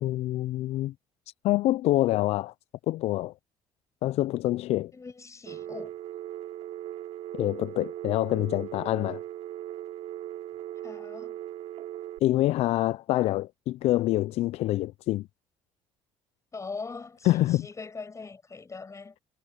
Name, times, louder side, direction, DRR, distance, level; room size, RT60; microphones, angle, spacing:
voice 1, 0.0-0.9 1.4-2.5 2.9-3.3 4.0-4.9 7.3-9.2 12.2-15.3 17.3-17.7, left 16 dB, 65° left, 0.5 m, -26 dB
voice 2, 4.9-5.9 10.8-11.4 16.5-19.2, left 4 dB, 25° left, 6.4 m, -41 dB
Telephone, 5.5-12.2, right 12 dB, 65° right, 4.8 m, -39 dB
supercardioid pair, 75°, 12 cm